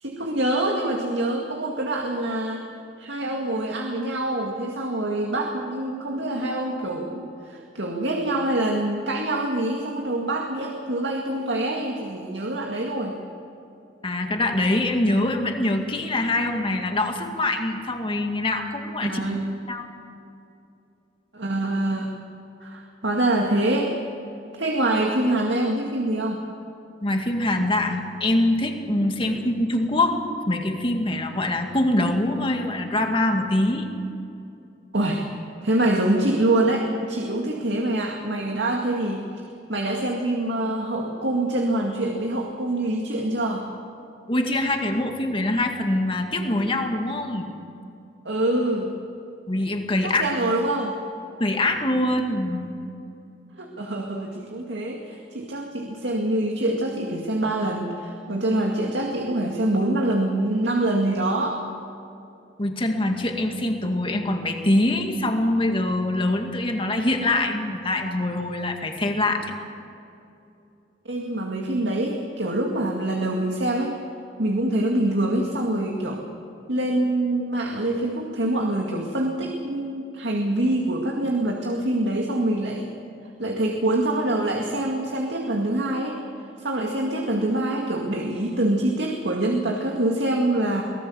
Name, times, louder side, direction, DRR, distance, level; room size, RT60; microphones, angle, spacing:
voice 1, 0.0-2.7 3.0-13.2 19.0-19.6 21.3-22.1 22.6-23.9 24.5-26.4 29.2-29.3 34.9-35.3 35.6-39.3 39.7-43.7 48.2-49.0 50.0-50.9 53.5-61.6 71.1-74.0 74.4-76.2 76.7-82.9 83.4-86.2 86.6-90.8, right 1 dB, 85° right, 1 dB, 2.1 m, -25 dB
voice 2, 14.0-19.2 19.7-19.9 27.0-30.2 30.5-33.9 44.3-47.5 49.5-50.2 51.4-52.7 62.6-69.5, left 1 dB, 30° left, 4 dB, 2.2 m, -24 dB
24.0 x 18.0 x 7.1 m, 2.7 s
head